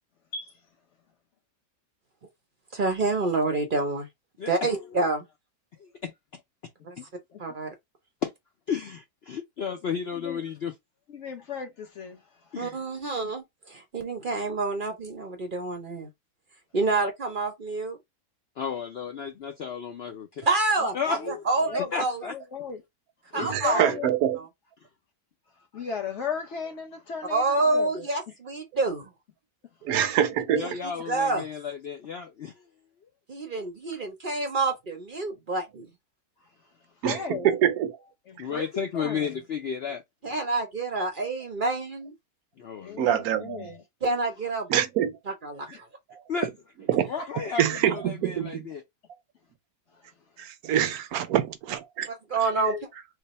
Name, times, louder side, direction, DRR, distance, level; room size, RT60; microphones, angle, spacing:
voice 1, 2.7-4.1 4.5-5.2 6.8-7.0 7.4-7.7 12.6-16.1 16.7-18.0 20.4-22.2 23.3-23.9 24.4-24.5 27.3-29.1 30.6-31.5 33.3-35.9 40.2-42.1 44.0-44.7 45.3-45.9 52.1-52.7, right 3 dB, 50° right, 0.6 m, -28 dB
voice 2, 4.4-4.8 5.8-6.1 8.2-8.3 8.7-10.7 12.5-12.8 18.6-20.4 20.9-21.4 21.9-22.3 30.5-32.5 38.4-40.0 42.6-43.1 46.3-46.5 47.1-48.8, left 6 dB, 75° left, 0.5 m, -33 dB
voice 3, 10.1-10.4 11.1-12.6 13.2-13.3 20.8-20.9 21.1-21.4 21.7-21.9 22.2-22.8 23.3-24.1 25.7-28.3 37.0-37.5 38.3-39.3 41.0-41.1 42.8-43.8 45.7-45.8 47.2-47.3 49.9-50.1 52.5-52.8, left 5 dB, 50° left, 1.0 m, -36 dB
voice 4, 23.4-24.4 29.8-30.7 37.0-37.2 37.4-37.9 43.0-43.7 44.7-45.1 46.9-47.1 47.6-48.7 50.4-52.1, right 10 dB, 70° right, 1.0 m, -25 dB
3.3 x 2.1 x 4.1 m
omnidirectional pair, 1.7 m